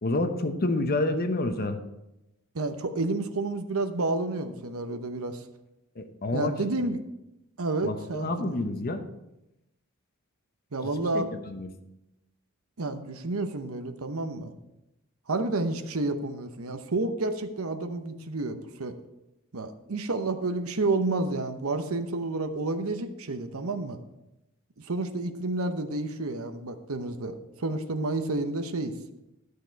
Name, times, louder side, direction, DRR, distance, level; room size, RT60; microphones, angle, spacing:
voice 1, 0.0-1.8 6.0-6.5 7.8-9.0 11.1-11.7, left 2 dB, 45° left, 7 dB, 0.9 m, -28 dB
voice 2, 2.5-5.4 6.3-7.0 7.6-8.6 10.7-11.3 12.8-14.5 15.3-19.0 19.5-24.0 24.8-29.0, right 2 dB, 75° right, 8 dB, 0.9 m, -30 dB
12.5 x 6.7 x 4.5 m, 0.92 s
head